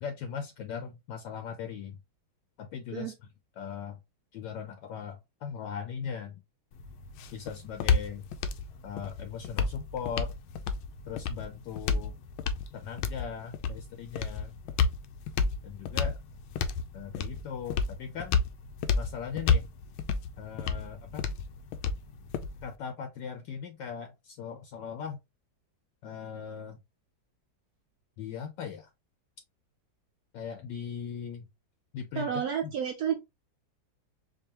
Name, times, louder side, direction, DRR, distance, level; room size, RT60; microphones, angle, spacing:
voice 1, 0.0-2.0 2.6-3.1 3.6-4.0 4.3-6.4 7.3-8.3 8.8-10.3 11.1-12.1 12.7-14.5 15.6-16.2 16.9-18.4 19.0-19.7 20.4-21.3 22.6-25.2 26.0-26.8 28.2-28.9 30.3-31.5 31.9-32.3 32.6-32.7, left 7 dB, 70° left, 1.1 m, -39 dB
sound 1, 6.7-22.8, left 5 dB, 90° left, 1.4 m, -31 dB
voice 2, 32.2-33.1, right 8 dB, 75° right, 0.8 m, -30 dB
4.6 x 2.6 x 2.8 m
omnidirectional pair, 2.2 m